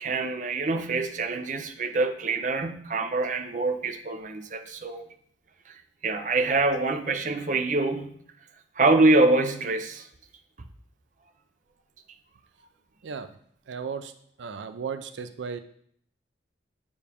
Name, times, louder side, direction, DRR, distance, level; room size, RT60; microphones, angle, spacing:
voice 1, 0.0-5.0 5.7-8.2 8.8-10.1, right 2 dB, 40° right, 6 dB, 0.6 m, -25 dB
voice 2, 13.0-13.4 13.7-14.1 14.4-15.6, right 6 dB, 85° right, 10 dB, 0.5 m, -35 dB
8.1 x 7.1 x 3.5 m, 0.65 s
head